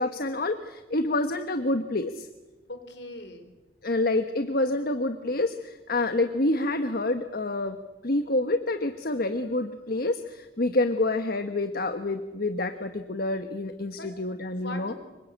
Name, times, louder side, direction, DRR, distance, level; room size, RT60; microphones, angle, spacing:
voice 1, 0.0-2.3 3.8-7.8 8.0-14.9, left 2 dB, 55° left, 8 dB, 1.3 m, -27 dB
voice 2, 2.7-3.6 10.9-11.0 13.9-14.2 14.6-15.0, left 2 dB, 75° left, 9 dB, 3.9 m, -41 dB
26.5 x 24.0 x 8.8 m, 1.1 s
head